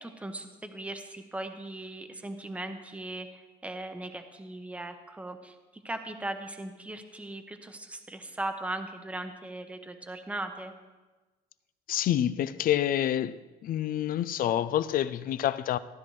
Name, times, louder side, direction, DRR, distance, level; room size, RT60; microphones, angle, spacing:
voice 1, 0.0-5.6 5.8-10.7, right 2 dB, 10° right, 0.9 m, -38 dB
voice 2, 11.9-13.4 13.6-15.8, left 11 dB, 55° left, 0.5 m, -27 dB
15.0 x 10.5 x 3.2 m
cardioid pair, 110°, 17 cm